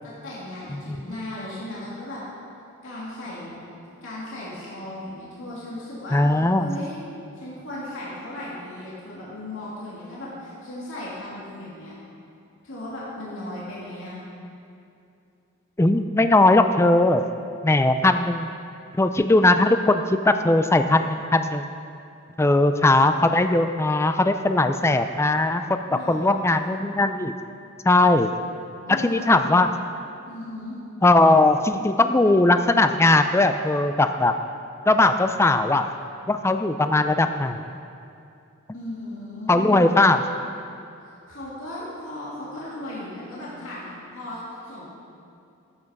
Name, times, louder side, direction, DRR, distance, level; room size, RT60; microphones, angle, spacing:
voice 1, 0.0-2.2 2.8-3.6 4.0-6.2 6.6-7.0 7.3-11.9 12.6-14.2 25.9-26.7 28.9-29.5 30.3-30.8 38.7-39.8 41.0-44.9, left 1 dB, 70° left, -8 dB, 2.8 m, -36 dB
voice 2, 6.1-6.7 15.8-17.2 17.6-18.5 18.9-21.7 22.4-27.3 27.9-28.3 28.9-29.7 31.0-34.4 34.9-35.9 36.3-37.8 39.5-40.2, left 2 dB, 15° left, 9 dB, 0.4 m, -19 dB
13.0 x 8.6 x 5.3 m, 2.6 s
head